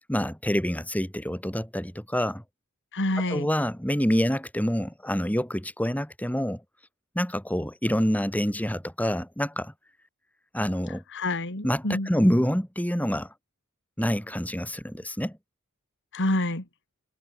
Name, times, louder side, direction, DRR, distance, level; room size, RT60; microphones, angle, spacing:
voice 1, 0.1-2.4 3.3-6.6 7.1-9.7 10.5-11.0 11.6-13.3 14.0-15.4, equal, 5° left, 6.8 m, -27 dB
voice 2, 2.9-3.5 11.1-12.1 16.1-16.6, left 1 dB, 55° left, 4.8 m, -27 dB
head